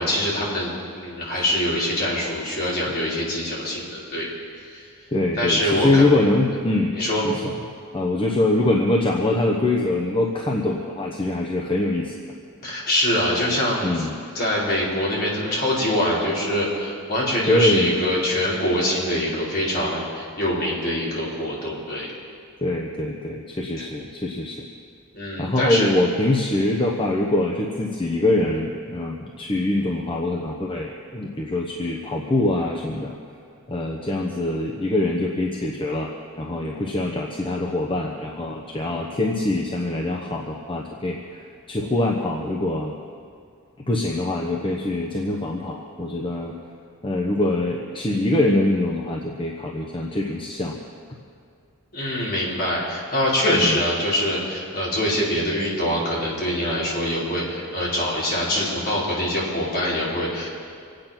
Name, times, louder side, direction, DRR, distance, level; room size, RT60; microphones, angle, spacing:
voice 1, 0.0-4.3 4.6-4.9 5.4-6.0 6.9-7.2 12.6-14.1 14.3-22.1 23.8-23.9 25.1-25.9 51.9-60.5, left 1 dB, 45° left, -6 dB, 4.9 m, -24 dB
voice 2, 5.1-6.9 7.2-7.5 7.9-12.1 13.8-14.2 17.5-18.0 22.6-24.6 25.4-33.1 33.7-36.1 36.4-42.9 43.9-46.5 47.0-50.8 53.5-53.8, left 2 dB, 25° left, 0 dB, 1.0 m, -23 dB
25.0 x 9.2 x 5.9 m, 2.3 s
head